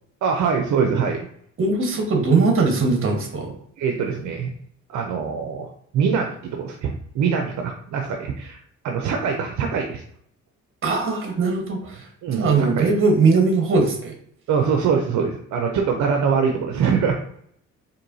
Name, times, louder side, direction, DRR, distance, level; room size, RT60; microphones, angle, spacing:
voice 1, 0.2-1.3 3.8-4.5 4.9-8.6 8.8-10.0 12.2-12.9 14.5-17.2, right 6 dB, 70° right, 3 dB, 0.6 m, -23 dB
voice 2, 1.6-3.6 10.8-12.0 12.4-14.1, right 4 dB, 45° right, 2 dB, 1.3 m, -20 dB
4.5 x 2.6 x 2.7 m, 0.67 s
cardioid pair, 90°, 30 cm